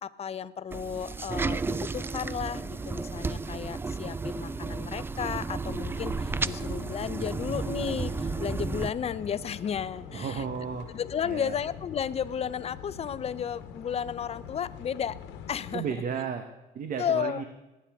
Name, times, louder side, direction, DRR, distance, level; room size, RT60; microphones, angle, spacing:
voice 1, 0.0-10.4 10.9-15.2 15.5-15.8 17.0-17.4, left 8 dB, 35° left, 16 dB, 0.6 m, -33 dB
sound 1, 0.7-8.9, right 4 dB, 15° right, 0.3 m, -33 dB
Conversation / Chatter / Fixed-wing aircraft airplane, 2.5-10.4, left 1 dB, 10° left, 2.2 m, -52 dB
sound 2, 5.6-15.7, left 8 dB, 90° left, 1.2 m, -44 dB
voice 2, 10.1-10.9 11.2-11.6 15.7-16.4 16.7-17.4, right 7 dB, 50° right, 7 dB, 1.1 m, -33 dB
19.5 x 9.8 x 3.6 m, 1.1 s
cardioid pair, 110°, 17 cm